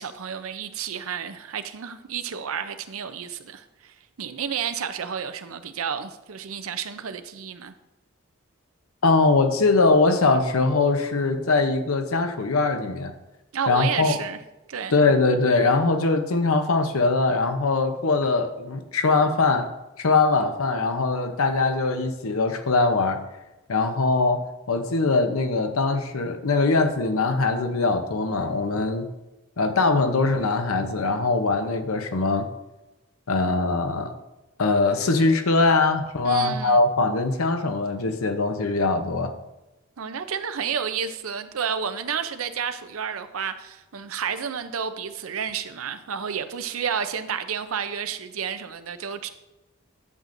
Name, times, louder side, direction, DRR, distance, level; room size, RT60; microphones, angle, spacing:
voice 1, 0.0-7.7 13.5-14.4 14.7-14.9 36.2-36.8 40.0-49.3, right 7 dB, 80° right, 10 dB, 0.6 m, -31 dB
voice 2, 9.0-13.1 13.7-14.1 14.9-19.7 20.0-23.2 23.7-29.1 29.6-32.5 33.3-34.1 34.6-39.3, left 3 dB, 85° left, 7 dB, 0.8 m, -22 dB
11.0 x 7.4 x 2.6 m, 1.0 s
head